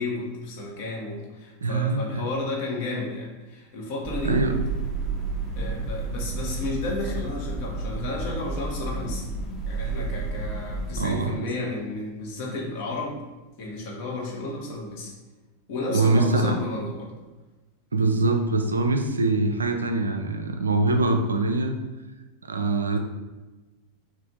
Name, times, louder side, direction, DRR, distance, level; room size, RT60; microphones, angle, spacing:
voice 1, 0.0-4.4 5.5-9.2 9.7-13.2 13.6-15.1 15.7-17.1, left 2 dB, 45° left, -2 dB, 0.9 m, -32 dB
voice 2, 1.6-2.2 4.2-4.6 11.0-11.4 15.9-16.6 17.9-21.7 22.5-23.0, right 3 dB, 75° right, 5 dB, 0.3 m, -23 dB
sound 1, 4.0-11.0, right 3 dB, 5° left, 0.8 m, -31 dB
3.3 x 2.5 x 4.0 m, 1.1 s
figure-of-eight pair, 90°, 0 cm